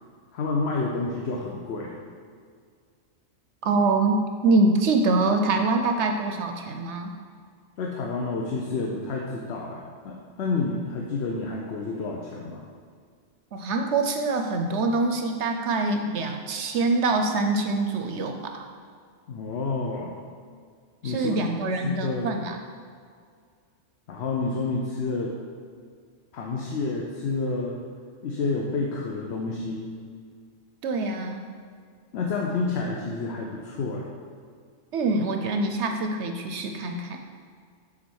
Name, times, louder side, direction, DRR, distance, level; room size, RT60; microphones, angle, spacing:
voice 1, 0.3-2.0 7.8-12.6 19.3-20.1 21.0-21.5 21.8-22.3 24.1-25.4 26.3-27.8 28.2-30.0 32.1-34.1, left 3 dB, 60° left, -1 dB, 0.9 m, -29 dB
voice 2, 3.6-7.1 13.5-18.6 21.0-22.6 30.8-31.4 34.9-37.2, right 3 dB, 65° right, 5 dB, 0.8 m, -25 dB
7.4 x 3.6 x 6.3 m, 2.1 s
omnidirectional pair, 1.3 m